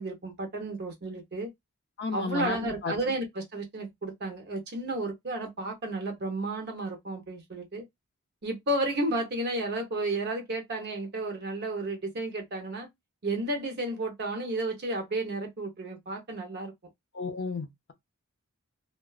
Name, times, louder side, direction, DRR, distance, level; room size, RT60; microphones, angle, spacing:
voice 1, 0.0-1.5 2.1-7.8 8.4-12.9 13.2-16.7, right 2 dB, 50° right, 0.8 m, -32 dB
voice 2, 2.0-2.9 17.1-17.9, left 4 dB, 50° left, 0.5 m, -33 dB
2.3 x 2.3 x 2.3 m
head